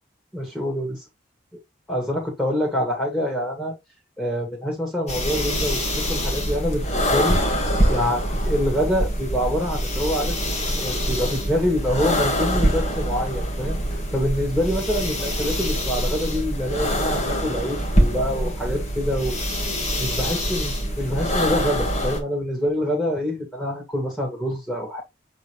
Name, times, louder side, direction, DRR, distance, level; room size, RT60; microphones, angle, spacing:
voice 1, 0.3-1.0 1.9-3.7 4.2-10.4 10.8-19.4 20.0-25.0, equal, 5° left, 2.3 m, -26 dB
sound 1, 5.1-22.2, equal, 35° left, 2.0 m, -24 dB
7.9 x 3.9 x 3.2 m
head